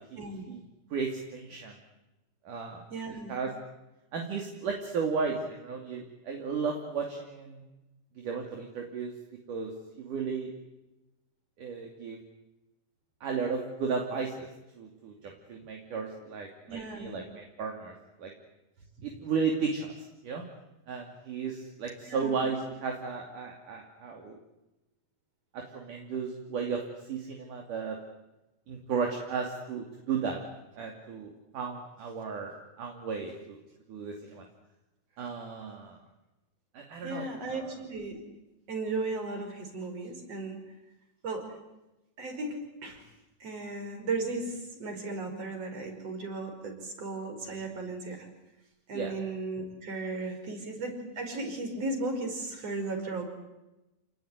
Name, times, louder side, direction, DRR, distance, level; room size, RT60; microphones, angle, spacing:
voice 1, 0.9-1.8 2.5-2.8 3.3-3.5 4.1-7.6 8.2-9.1 9.5-9.7 10.0-10.5 11.6-12.2 13.2-14.5 14.8-17.9 18.2-18.3 19.0-19.9 20.2-20.4 20.9-24.4 25.5-26.8 27.1-28.0 28.7-30.4 30.8-32.5 32.8-33.6 33.9-34.4 35.2-36.0 36.7-37.7 48.9-49.1, right 5 dB, 60° right, 1 dB, 4.2 m, -34 dB
voice 2, 2.9-3.3 16.7-17.2 19.0-19.1 22.0-22.4 37.0-38.2 38.7-40.6 41.2-41.5 42.2-43.0 43.4-48.3 48.9-53.3, right 3 dB, 40° right, 5 dB, 6.1 m, -36 dB
29.0 x 19.5 x 9.7 m, 0.97 s
omnidirectional pair, 4.4 m